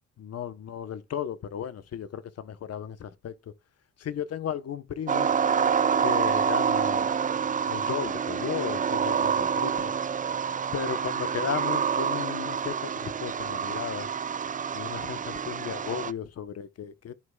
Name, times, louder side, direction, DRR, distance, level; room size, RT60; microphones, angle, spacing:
voice 1, 0.2-3.5 4.0-5.3 6.0-7.1 7.4-9.9 10.7-14.1 14.7-17.1, left 8 dB, 55° left, 1.0 m, -35 dB
sound 1, 5.1-16.1, right 7 dB, 25° right, 0.4 m, -27 dB
13.5 x 4.9 x 2.3 m
cardioid pair, 90°, 30 cm